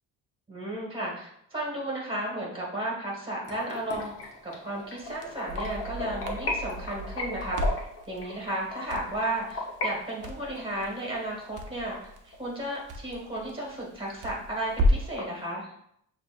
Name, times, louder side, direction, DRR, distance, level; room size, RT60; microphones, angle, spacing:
voice 1, 0.5-4.1 4.4-15.7, right 1 dB, 15° right, -3 dB, 1.6 m, -34 dB
sound 1, 3.4-9.9 10.2-12.7 13.1-13.2 13.6-13.7 14.1-14.2 14.5-15.2, left 2 dB, 45° left, 1.1 m, -36 dB
Crackle, 5.0-15.2, equal, 70° right, 0.7 m, -33 dB
6.8 x 2.8 x 2.5 m, 0.72 s
cardioid pair, 125°, 33 cm